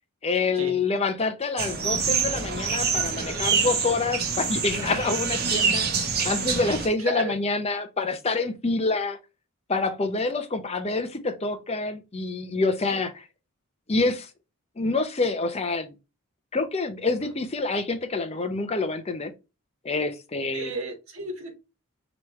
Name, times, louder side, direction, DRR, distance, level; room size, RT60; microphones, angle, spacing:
voice 1, 0.2-5.9 6.2-9.2 9.7-13.1 13.9-14.3 14.8-15.9 16.5-19.3 19.8-20.7, left 3 dB, 30° left, 0.6 m, -27 dB
sound 1, 1.6-6.9, right 5 dB, 45° right, 1.0 m, -26 dB
voice 2, 6.6-7.4 12.9-13.0 20.5-21.5, right 1 dB, 70° right, 1.6 m, -33 dB
4.9 x 3.1 x 3.1 m
head